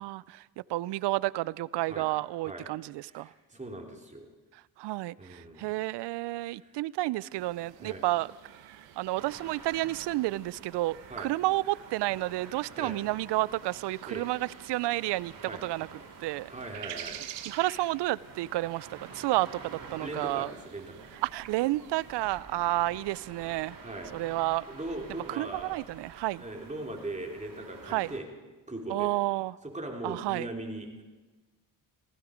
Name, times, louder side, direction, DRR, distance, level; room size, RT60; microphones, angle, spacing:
voice 1, 0.0-3.3 4.5-8.3 9.0-16.5 17.5-20.5 21.2-23.8 24.1-24.6 25.3-26.4 27.9-28.1 28.9-29.6 30.0-30.5, right 18 dB, 70° right, 22 dB, 0.5 m, -31 dB
voice 2, 3.1-4.3 5.2-5.7 6.5-6.8 7.8-8.1 11.1-11.3 12.8-12.9 14.1-14.2 15.4-15.6 16.5-17.2 20.0-21.1 23.8-24.1 24.7-25.8 26.4-28.3 28.7-29.1 29.7-31.0, right 2 dB, 15° right, 1 dB, 3.2 m, -39 dB
sound 1, 7.3-22.4, right 11 dB, 90° right, 1.1 m, -49 dB
sound 2, 9.2-28.2, right 4 dB, 50° right, 3.3 m, -50 dB
16.0 x 15.5 x 5.1 m, 1.3 s
supercardioid pair, 65°, 43 cm